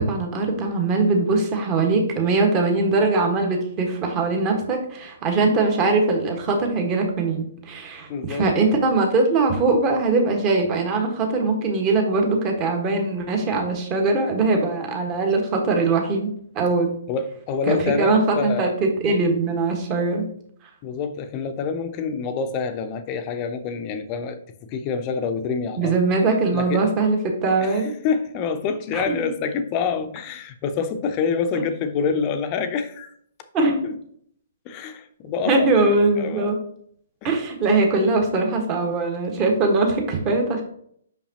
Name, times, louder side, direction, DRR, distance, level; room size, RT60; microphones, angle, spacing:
voice 1, 0.0-16.9 17.7-20.2 25.8-27.9 28.9-29.3 33.5-33.8 35.4-36.6 37.2-40.6, right 3 dB, 25° right, 1.4 m, -21 dB
voice 2, 8.1-8.5 17.1-18.7 20.8-26.0 26.5-26.9 27.6-33.1 33.6-33.9 34.7-36.5 37.2-37.3, left 5 dB, 30° left, 0.6 m, -27 dB
6.0 x 5.6 x 2.9 m
figure-of-eight pair, 125°, 0 cm